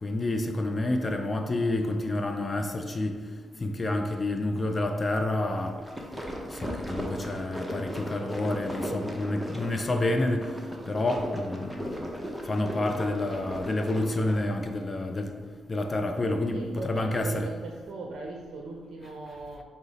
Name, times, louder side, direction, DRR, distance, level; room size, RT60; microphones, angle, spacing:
voice 1, 0.0-3.2 3.6-5.8 6.5-10.6 10.9-12.1 12.4-15.3 15.7-17.5, left 2 dB, 35° left, 0.4 m, -29 dB
sound 1, 5.6-14.5, equal, 5° right, 0.7 m, -37 dB
voice 2, 16.5-19.6, right 2 dB, 70° right, 0.5 m, -38 dB
4.7 x 2.0 x 3.9 m
supercardioid pair, 55°, 0 cm